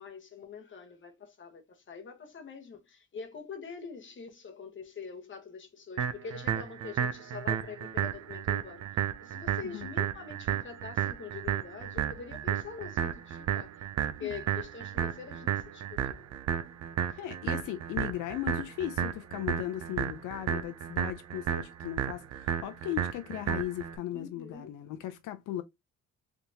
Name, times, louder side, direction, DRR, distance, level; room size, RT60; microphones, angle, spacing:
voice 1, 0.0-16.3 17.1-17.2 24.1-24.7, left 6 dB, 40° left, 1.1 m, -44 dB
sound 1, 6.0-24.0, right 9 dB, 60° right, 0.6 m, -33 dB
voice 2, 17.2-25.6, left 13 dB, 90° left, 0.5 m, -37 dB
3.4 x 2.8 x 2.7 m
cardioid pair, 90°, 30 cm